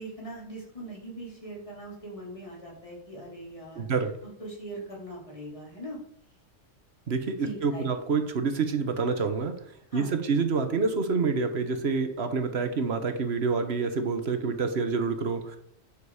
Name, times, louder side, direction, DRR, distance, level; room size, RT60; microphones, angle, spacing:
voice 1, 0.0-3.9 4.2-6.0 7.4-8.0 9.9-10.2, right 1 dB, 25° left, -4 dB, 3.7 m, -41 dB
voice 2, 3.8-4.1 7.1-9.5 9.9-15.6, right 4 dB, 55° right, 8 dB, 1.4 m, -27 dB
9.6 x 6.7 x 4.9 m, 0.69 s
omnidirectional pair, 1.3 m